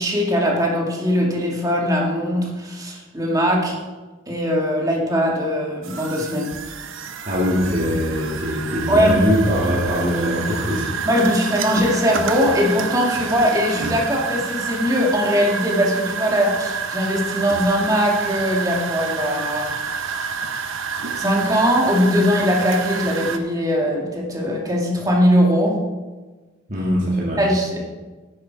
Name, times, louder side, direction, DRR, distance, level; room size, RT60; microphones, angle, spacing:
voice 1, 0.0-3.7 4.3-6.5 8.9-9.2 11.0-19.7 20.0-20.2 21.2-25.8 27.4-27.8, equal, 20° right, -2 dB, 2.0 m, -20 dB
sound 1, 5.8-23.4, right 5 dB, 75° right, 0.8 m, -28 dB
voice 2, 7.2-11.0 26.7-27.4, equal, 40° right, -6 dB, 2.1 m, -22 dB
9.9 x 9.0 x 4.7 m, 1.3 s
head